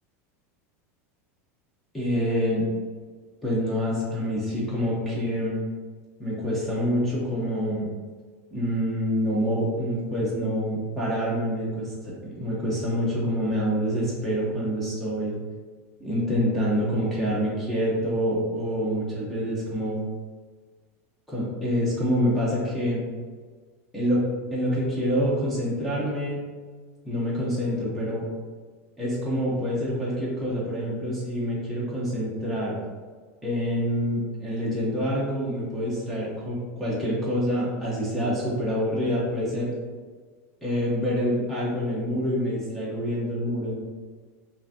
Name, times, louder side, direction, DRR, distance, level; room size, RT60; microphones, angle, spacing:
voice 1, 1.9-2.7 3.4-5.6 6.2-7.9 8.5-15.3 16.0-20.0 21.3-23.0 23.9-24.2 24.5-26.4 27.0-28.3 29.0-32.8 33.4-39.7 40.6-43.8, equal, ahead, -8 dB, 0.7 m, -26 dB
5.6 x 2.5 x 2.6 m, 1.5 s
supercardioid pair, 170°, 8 cm